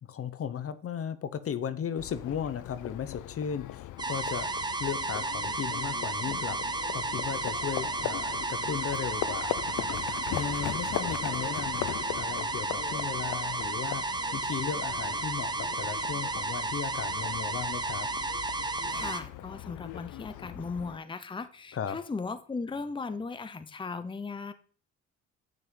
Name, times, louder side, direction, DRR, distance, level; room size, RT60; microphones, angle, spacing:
voice 1, 0.1-6.6 6.9-18.1 21.7-22.0, left 8 dB, 50° left, 13 dB, 0.8 m, -36 dB
Livestock farm animals working animals, 2.0-21.0, left 14 dB, 80° left, 0.6 m, -39 dB
sound 1, 4.0-19.2, right 3 dB, 15° right, 0.9 m, -33 dB
voice 2, 18.9-24.5, left 4 dB, 15° left, 12 dB, 0.7 m, -37 dB
10.5 x 5.8 x 3.8 m, 0.43 s
cardioid pair, 90°, 30 cm